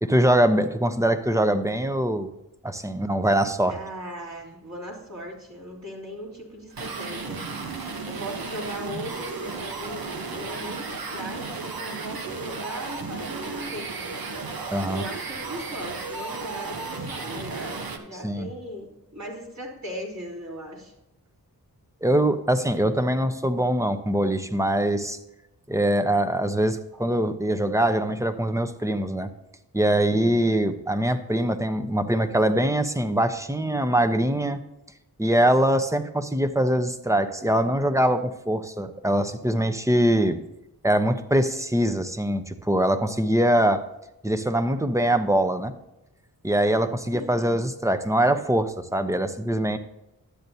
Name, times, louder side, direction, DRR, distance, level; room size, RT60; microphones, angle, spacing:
voice 1, 0.0-2.3 2.6-3.8 14.7-15.0 18.2-18.5 22.0-25.2 25.7-29.3 29.7-34.6 35.2-40.4 40.8-43.8 44.2-45.7 46.4-49.8, right 1 dB, 10° right, 9 dB, 0.8 m, -23 dB
voice 2, 3.7-20.9 26.9-27.1 30.0-30.4 47.1-47.5, equal, 45° right, -4 dB, 3.5 m, -38 dB
sound 1, 6.7-18.0, right 4 dB, 70° right, 1.1 m, -34 dB
12.0 x 7.9 x 2.8 m, 0.91 s
cardioid pair, 45°, 38 cm